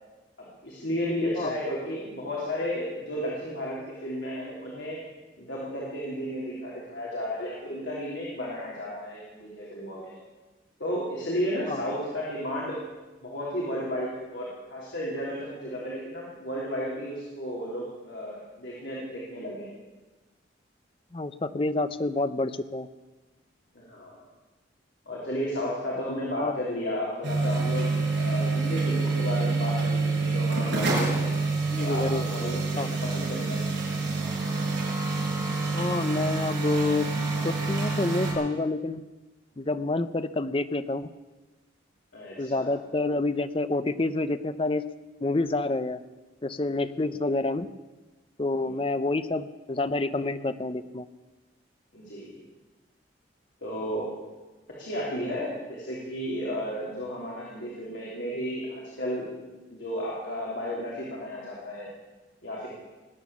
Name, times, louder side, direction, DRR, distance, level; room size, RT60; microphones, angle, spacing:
voice 1, 0.4-5.0 5.4-10.1 10.8-12.8 13.2-19.7 23.7-24.2 25.0-27.9 28.2-31.3 31.8-33.7 42.1-42.7 48.6-48.8 51.9-52.4 53.6-54.1 54.8-59.3 59.7-61.9 62.4-62.7, equal, 75° left, -5 dB, 3.4 m, -33 dB
voice 2, 21.1-22.9 26.4-26.6 28.4-28.6 31.7-32.2 32.8-32.9 35.7-37.1 37.4-39.0 39.6-41.1 42.4-44.8 45.2-46.0 46.4-47.7 48.4-51.1, left 2 dB, 30° left, 12 dB, 0.6 m, -28 dB
sound 1, 27.2-38.3, right 3 dB, 70° right, 5.3 m, -27 dB
20.0 x 9.0 x 7.2 m, 1.2 s
head